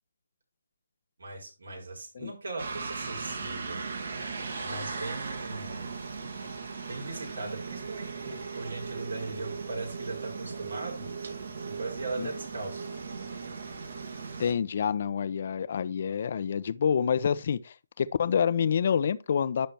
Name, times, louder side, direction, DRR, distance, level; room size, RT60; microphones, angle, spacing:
voice 1, 1.2-3.8 4.6-6.0 6.9-11.1 11.6-12.9, right 3 dB, 75° right, 4.9 m, -39 dB
sound 1, 2.6-14.5, right 4 dB, 60° right, 2.2 m, -38 dB
voice 2, 14.4-19.7, left 7 dB, 45° left, 0.7 m, -27 dB
10.5 x 4.4 x 4.4 m
figure-of-eight pair, 155°, 0 cm